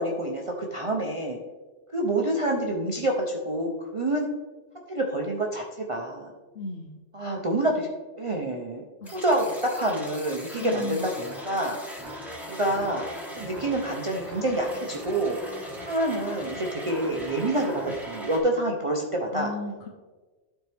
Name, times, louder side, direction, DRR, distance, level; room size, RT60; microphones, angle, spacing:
voice 1, 0.0-1.4 1.9-4.3 4.9-6.3 7.1-7.9 8.2-8.8 9.1-11.8 12.5-13.0 13.4-15.4 15.8-19.5, right 1 dB, 35° right, -1 dB, 0.7 m, -27 dB
voice 2, 6.5-6.9 9.0-9.2 10.6-11.1 19.3-19.9, left 2 dB, 65° left, 2 dB, 0.9 m, -34 dB
sound 1, 9.1-18.4, equal, ahead, 1.5 m, -39 dB
12.0 x 4.5 x 3.4 m, 1.3 s
omnidirectional pair, 1.2 m